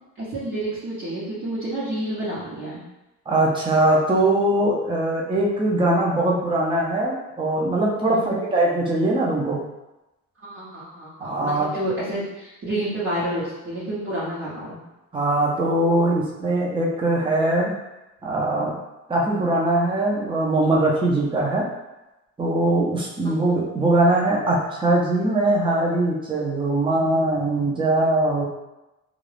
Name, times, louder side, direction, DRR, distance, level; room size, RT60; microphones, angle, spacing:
voice 1, 0.0-2.8 8.1-8.3 10.4-14.8 23.2-23.4, right 1 dB, 45° right, -9 dB, 1.0 m, -29 dB
voice 2, 3.3-9.6 11.2-11.7 15.1-17.7 18.2-18.7 19.1-21.6 22.4-28.5, right 2 dB, 15° right, -3 dB, 0.6 m, -21 dB
2.5 x 2.3 x 3.3 m, 0.99 s
cardioid pair, 90°, 30 cm